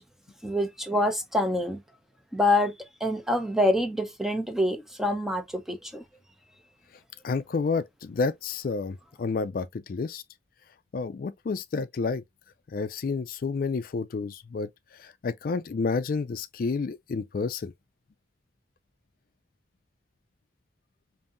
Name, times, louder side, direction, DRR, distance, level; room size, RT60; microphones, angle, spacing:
voice 1, 0.4-1.8 2.3-2.7 3.0-6.0, left 1 dB, ahead, 0.7 m, -26 dB
voice 2, 7.2-10.2 10.9-12.2 12.7-17.7, left 4 dB, 55° left, 0.4 m, -30 dB
5.3 x 2.7 x 2.5 m
head